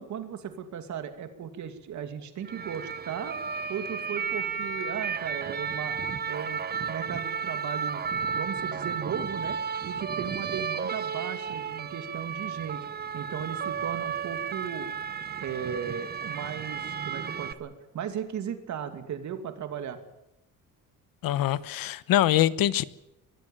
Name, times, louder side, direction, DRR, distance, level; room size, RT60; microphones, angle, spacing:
voice 1, 0.0-3.4 3.7-5.9 6.3-8.0 8.3-9.6 9.8-12.8 13.1-14.9 15.4-20.0, right 8 dB, 55° right, 8 dB, 2.6 m, -36 dB
sound 1, 2.5-17.5, right 6 dB, 30° right, 1.0 m, -33 dB
voice 2, 21.2-22.8, left 13 dB, 80° left, 17 dB, 1.1 m, -24 dB
23.0 x 15.5 x 9.2 m, 0.90 s
cardioid pair, 165°, 34 cm